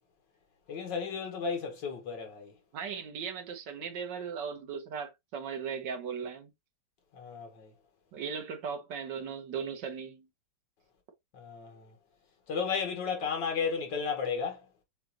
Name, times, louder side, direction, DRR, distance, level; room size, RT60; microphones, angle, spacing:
voice 1, 0.7-2.5 7.1-7.7 11.3-11.9 12.5-14.6, left 5 dB, 75° left, 1.9 m, -33 dB
voice 2, 2.7-6.5 8.1-10.3, right 6 dB, 70° right, 1.8 m, -37 dB
6.5 x 2.5 x 2.7 m
omnidirectional pair, 2.0 m